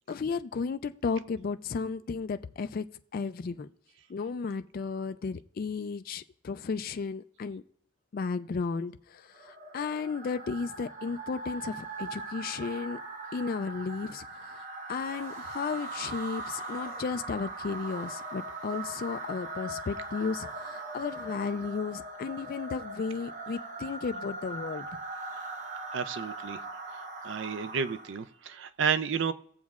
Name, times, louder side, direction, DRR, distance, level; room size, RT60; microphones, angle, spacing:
voice 1, 0.1-2.9 3.1-3.7 4.1-7.6 8.1-13.0 13.3-24.9, left 5 dB, 45° left, 0.3 m, -34 dB
sound 1, 9.3-28.3, right 2 dB, 40° right, 0.8 m, -40 dB
sound 2, 15.0-17.1, right 1 dB, 85° right, 3.5 m, -47 dB
voice 2, 25.9-26.6 27.2-29.3, right 6 dB, 60° right, 0.4 m, -31 dB
19.5 x 7.2 x 2.4 m
head